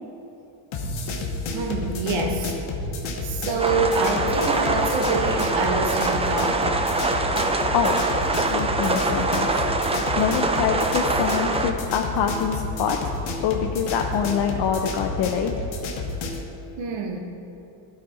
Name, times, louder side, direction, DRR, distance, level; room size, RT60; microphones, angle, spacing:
sound 1, 0.7-16.5, left 3 dB, 75° left, 1.2 m, -31 dB
voice 1, 0.8-1.1 1.5-2.5 2.8-6.7 16.8-17.2, right 3 dB, 70° right, 3 dB, 1.3 m, -27 dB
sound 2, 3.6-11.7, right 3 dB, 15° right, 0.4 m, -24 dB
voice 2, 8.3-9.6 10.2-13.1 13.4-15.5, left 7 dB, 60° left, 3 dB, 0.7 m, -25 dB
12.0 x 4.3 x 4.8 m, 2.8 s
cardioid pair, 95°, 49 cm